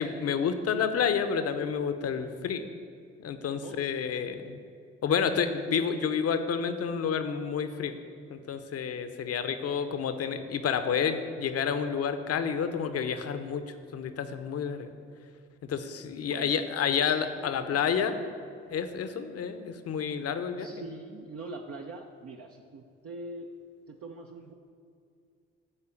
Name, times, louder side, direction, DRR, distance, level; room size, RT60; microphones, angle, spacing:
voice 1, 0.0-2.7 3.2-4.6 5.0-7.9 8.3-14.9 15.6-18.2 18.7-20.7, left 7 dB, 50° left, 10 dB, 0.8 m, -29 dB
voice 2, 16.3-17.9 20.6-23.5 23.9-24.5, right 2 dB, 50° right, 1 dB, 0.7 m, -43 dB
9.8 x 4.4 x 7.1 m, 2.4 s
hypercardioid pair, 45°, 30 cm